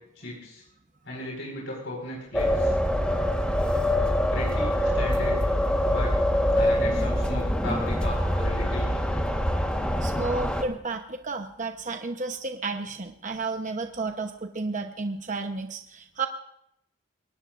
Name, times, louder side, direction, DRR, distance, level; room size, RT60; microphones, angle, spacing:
voice 1, 0.1-0.6 1.0-2.8 4.3-5.3 5.9-6.1 6.5-9.0, left 2 dB, 65° left, -2 dB, 4.8 m, -35 dB
sound 1, 2.3-10.6, equal, 5° left, 1.3 m, -24 dB
voice 2, 10.0-16.3, right 3 dB, 40° right, 5 dB, 0.9 m, -32 dB
22.5 x 18.5 x 2.5 m, 0.74 s
head